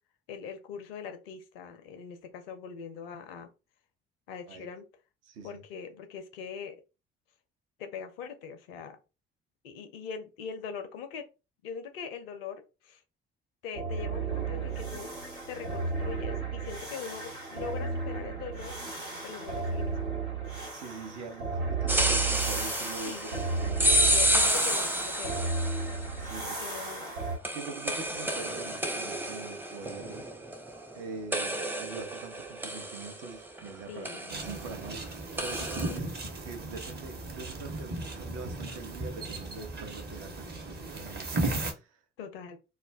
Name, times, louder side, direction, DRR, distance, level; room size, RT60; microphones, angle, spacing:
voice 1, 0.3-3.5 4.3-4.8 5.4-6.8 7.8-9.0 9.6-11.3 11.6-13.0 13.6-15.1 15.5-18.8 19.2-20.1 23.0-23.5 23.7-25.5 26.4-27.1 33.9-34.2 35.6-36.0 42.2-42.6, left 6 dB, 75° left, 0.5 m, -42 dB
voice 2, 5.3-5.6 20.7-24.2 25.9-26.6 27.5-30.3 30.9-35.1 35.4-36.1 36.4-42.0, right 4 dB, 60° right, 0.8 m, -44 dB
sound 1, 13.7-27.4, right 4 dB, 90° right, 1.3 m, -34 dB
sound 2, 21.9-26.1 27.4-31.0 31.3-33.7 34.0-34.6 35.4-36.0, equal, 5° right, 0.6 m, -30 dB
sound 3, 34.3-41.7, right 2 dB, 35° right, 1.0 m, -36 dB
2.3 x 2.2 x 3.4 m
figure-of-eight pair, 45°, 29 cm